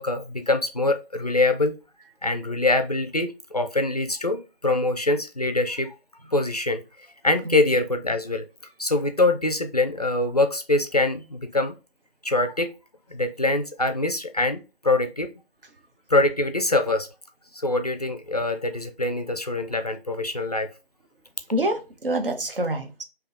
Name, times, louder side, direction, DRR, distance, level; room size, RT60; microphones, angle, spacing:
voice 1, 0.0-1.7 2.2-5.9 6.3-8.5 8.8-11.8 12.2-12.7 13.1-15.3 16.1-17.1 17.5-20.7, left 2 dB, 40° left, 0.4 m, -24 dB
voice 2, 21.5-23.0, right 1 dB, 60° right, 1.0 m, -26 dB
3.5 x 2.8 x 3.8 m
figure-of-eight pair, 155°, 31 cm